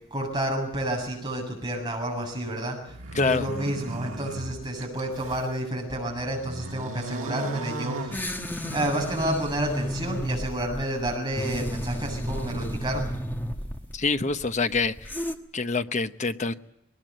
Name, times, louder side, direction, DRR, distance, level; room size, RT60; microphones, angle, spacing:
voice 1, 0.1-8.3 8.6-13.1, right 1 dB, 20° right, 7.6 m, -30 dB
sound 1, 2.9-5.5 6.0-8.8, right 2 dB, 85° right, 1.6 m, -37 dB
voice 2, 3.1-3.5 8.5-8.6 13.9-15.2 15.5-16.5, left 4 dB, 35° left, 0.9 m, -26 dB
sound 2, 8.1-15.3, equal, 10° left, 1.3 m, -32 dB
21.5 x 20.0 x 9.0 m
head